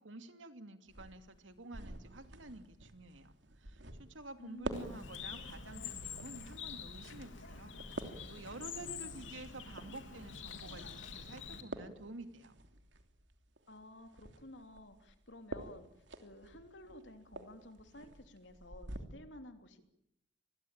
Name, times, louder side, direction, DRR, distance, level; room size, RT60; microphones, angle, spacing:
voice 1, 0.0-12.6, right 2 dB, 85° right, 8 dB, 2.6 m, -50 dB
sound 1, 0.8-19.0, right 1 dB, 70° right, 3.0 m, -50 dB
voice 2, 4.4-5.0 13.7-15.9 16.2-19.8, left 1 dB, 70° left, 7 dB, 3.3 m, -53 dB
Bird, 4.7-11.6, left 6 dB, 90° left, 3.3 m, -46 dB
27.5 x 21.5 x 8.9 m, 0.78 s
head